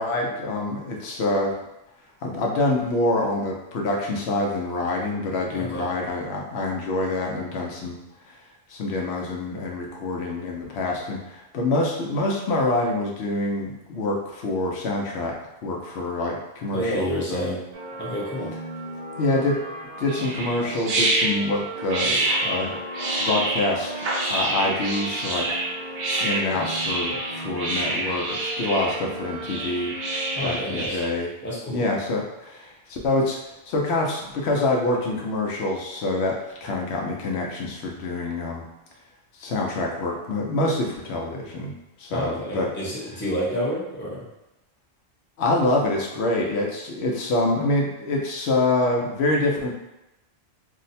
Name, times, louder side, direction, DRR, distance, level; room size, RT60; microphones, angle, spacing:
voice 1, 0.0-1.5 2.2-8.0 8.3-8.4 8.7-15.3 15.6-17.6 19.2-19.6 20.0-22.8 23.2-25.6 26.2-29.9 30.4-31.3 31.7-33.4 33.7-38.6 39.4-41.7 42.0-42.7 45.4-49.7, left 2 dB, 75° left, -1 dB, 0.9 m, -26 dB
voice 2, 5.5-5.9 16.7-17.6 18.0-18.5 30.3-31.0 31.4-31.9 42.1-44.3, equal, 10° left, -6 dB, 0.6 m, -29 dB
sound 1, 17.7-30.6, right 1 dB, 40° right, 0.7 m, -36 dB
sound 2, 20.1-31.1, right 2 dB, 70° right, 0.9 m, -27 dB
2.7 x 2.1 x 4.0 m, 0.90 s
omnidirectional pair, 1.1 m